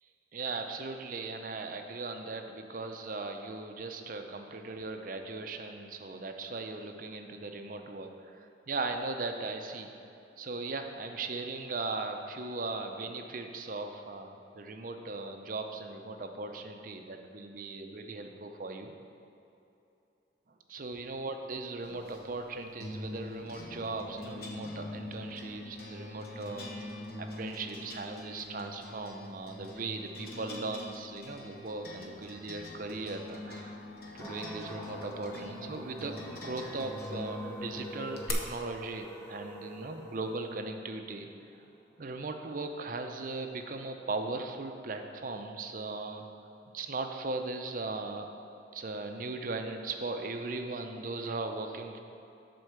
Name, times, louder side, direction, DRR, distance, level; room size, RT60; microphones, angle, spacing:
voice 1, 0.3-9.9 10.4-18.9 20.7-26.7 27.2-33.8 34.1-41.3 42.0-46.3 46.7-48.3 48.7-52.0, right 3 dB, 50° right, 5 dB, 0.6 m, -38 dB
sound 1, 21.8-38.3, left 2 dB, 55° left, 0.9 m, -44 dB
sound 2, 34.2-43.1, equal, 10° left, 0.8 m, -47 dB
7.8 x 4.6 x 6.6 m, 2.8 s
head